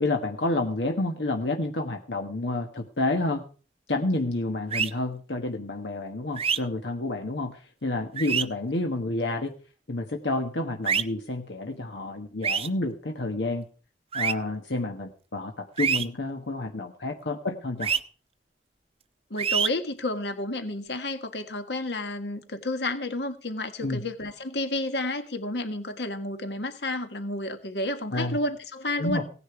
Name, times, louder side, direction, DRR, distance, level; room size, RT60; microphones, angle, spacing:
voice 1, 0.0-3.4 3.9-9.5 9.9-13.6 14.1-18.0 23.8-24.0 28.1-28.4 29.0-29.2, left 2 dB, 90° left, 4 dB, 1.3 m, -29 dB
sound 1, 4.7-4.9 6.4-6.6 8.2-8.4 10.8-11.0 12.4-12.7 14.1-14.3 15.8-16.0 17.8-18.0 19.4-19.7, right 7 dB, 35° right, 0.7 m, -25 dB
voice 2, 19.3-29.2, left 1 dB, 70° left, 8 dB, 1.7 m, -31 dB
17.0 x 10.0 x 4.8 m, 0.39 s
head